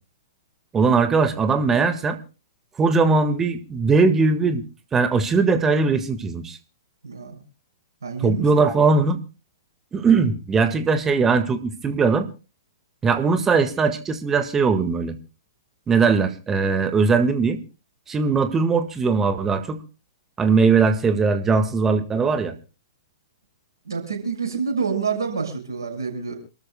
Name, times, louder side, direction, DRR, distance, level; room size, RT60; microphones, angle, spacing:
voice 1, 0.7-2.2 2.8-4.6 4.9-6.6 8.2-9.2 9.9-12.3 13.0-15.2 15.9-17.6 18.1-19.8 20.4-22.5, right 4 dB, 15° right, 9 dB, 1.7 m, -20 dB
voice 2, 7.0-7.4 8.0-8.5 23.9-26.3, right 5 dB, 70° right, 1 dB, 6.5 m, -27 dB
28.5 x 13.0 x 2.2 m, 0.33 s
figure-of-eight pair, 110°, 2 cm